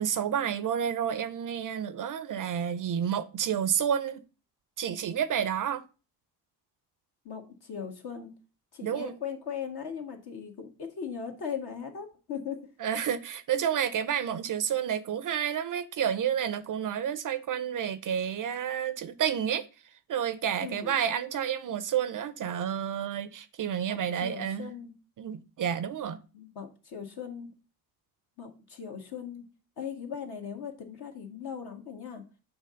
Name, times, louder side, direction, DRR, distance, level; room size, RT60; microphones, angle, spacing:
voice 1, 0.0-4.2 4.8-5.8 8.8-9.1 12.8-19.7 20.1-24.7 25.2-26.2, right 9 dB, 45° right, 0.6 m, -30 dB
voice 2, 7.2-8.3 8.7-12.7 20.6-21.0 23.9-24.9 26.3-27.5 28.4-29.4 29.8-32.2, left 7 dB, 55° left, 1.6 m, -39 dB
6.8 x 2.9 x 5.0 m
supercardioid pair, 70°, 46 cm